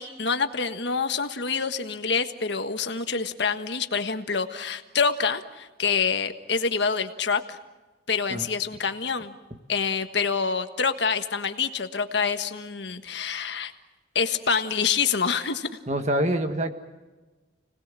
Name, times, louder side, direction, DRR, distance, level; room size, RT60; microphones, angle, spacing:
voice 1, 0.0-7.6 8.1-9.3 9.7-13.7 14.1-15.7, left 5 dB, 65° left, 8 dB, 1.5 m, -26 dB
voice 2, 15.9-16.7, right 1 dB, 35° right, 6 dB, 1.8 m, -25 dB
29.5 x 20.0 x 7.6 m, 1.2 s
head